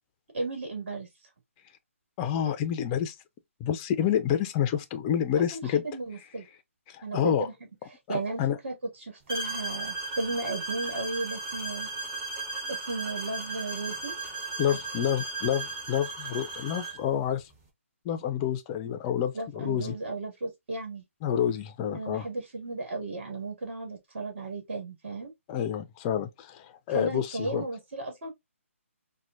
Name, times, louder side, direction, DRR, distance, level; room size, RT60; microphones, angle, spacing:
voice 1, 0.3-1.1 5.5-6.4 7.0-7.5 8.1-8.7 9.0-11.9 12.7-14.1 14.7-14.8 19.3-21.0 21.9-25.3 26.9-28.3, right 2 dB, 55° right, 1.9 m, -34 dB
voice 2, 2.2-3.1 3.6-5.8 6.9-7.5 8.1-8.6 14.6-17.5 18.0-20.0 21.2-22.3 25.5-27.7, left 9 dB, 20° left, 0.3 m, -28 dB
sound 1, 9.3-17.0, right 3 dB, 25° right, 1.1 m, -36 dB
4.2 x 2.1 x 2.5 m
hypercardioid pair, 155°, 7 cm